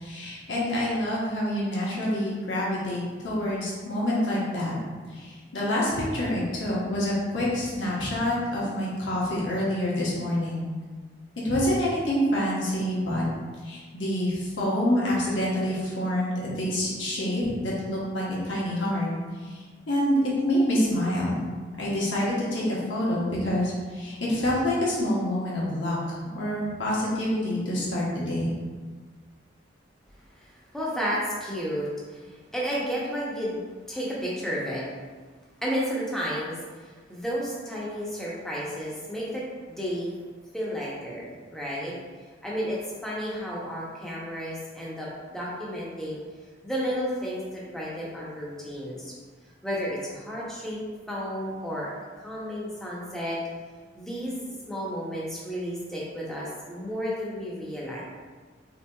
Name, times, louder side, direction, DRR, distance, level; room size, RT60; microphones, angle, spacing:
voice 1, 0.0-4.7 5.1-10.6 11.4-13.3 13.6-19.1 19.4-20.2 20.4-21.4 21.8-26.0 26.3-28.5, left 1 dB, 85° left, -6 dB, 1.0 m, -27 dB
voice 2, 30.4-33.6 33.9-34.8 35.6-40.1 40.5-41.9 42.4-46.2 46.6-49.1 49.6-50.8 51.1-51.9 52.2-53.4 53.9-58.0, equal, ahead, -6 dB, 0.6 m, -32 dB
3.7 x 2.9 x 2.2 m, 1.4 s
head